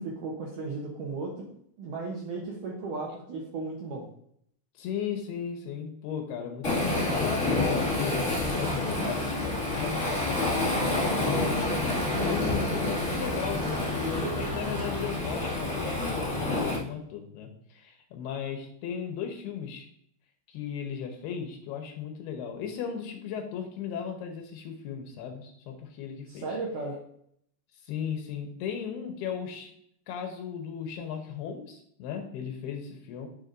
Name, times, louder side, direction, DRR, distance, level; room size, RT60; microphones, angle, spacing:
voice 1, 0.0-4.1 11.0-11.2 26.3-27.0, right 3 dB, 70° right, -2 dB, 2.0 m, -36 dB
voice 2, 4.8-10.4 11.2-19.9 20.5-26.5 27.8-29.7 30.1-33.3, left 7 dB, 75° left, 4 dB, 2.7 m, -36 dB
Waves surf, 6.6-16.8, left 2 dB, 30° left, 1.4 m, -28 dB
9.6 x 6.7 x 2.6 m, 0.69 s
omnidirectional pair, 5.1 m